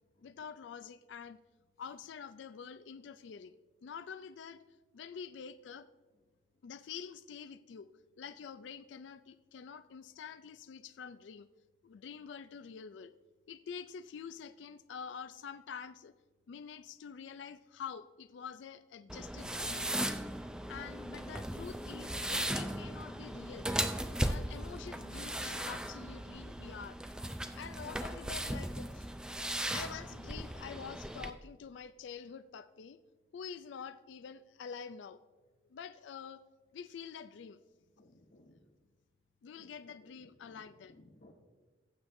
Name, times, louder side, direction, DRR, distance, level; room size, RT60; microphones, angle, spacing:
voice 1, 0.2-1.4 1.8-3.5 3.8-4.6 4.9-5.9 6.6-7.9 8.2-11.5 11.8-13.1 13.5-16.1 16.5-19.9 20.7-23.7 24.2-27.0 27.5-29.1 29.7-33.0 33.3-35.2 35.7-36.4 36.7-37.6 39.4-41.0, left 6 dB, 85° left, 12 dB, 0.4 m, -47 dB
sound 1, 19.1-31.3, right 1 dB, 5° right, 0.3 m, -37 dB
voice 2, 38.0-38.6 39.6-39.7 40.0-40.6 40.9-41.3, left 1 dB, 55° left, -3 dB, 1.0 m, -60 dB
18.0 x 8.1 x 2.6 m, 1.3 s
head